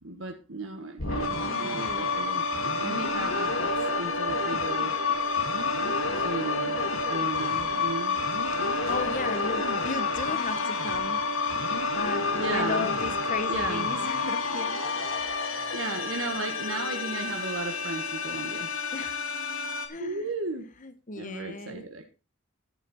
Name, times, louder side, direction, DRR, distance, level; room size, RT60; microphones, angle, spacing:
voice 1, 0.0-4.9 6.2-6.8 7.1-8.2 8.6-9.0 12.4-12.9 13.5-13.9 15.5-18.7 20.0-20.7 21.1-22.1, right 3 dB, 65° right, 1.5 m, -35 dB
sound 1, 1.0-19.9, left 4 dB, 65° left, 2.1 m, -29 dB
voice 2, 8.5-11.2 11.9-14.8 18.9-19.2 19.9-20.3 20.8-21.9, left 3 dB, 40° left, 0.9 m, -35 dB
11.0 x 9.6 x 4.3 m
head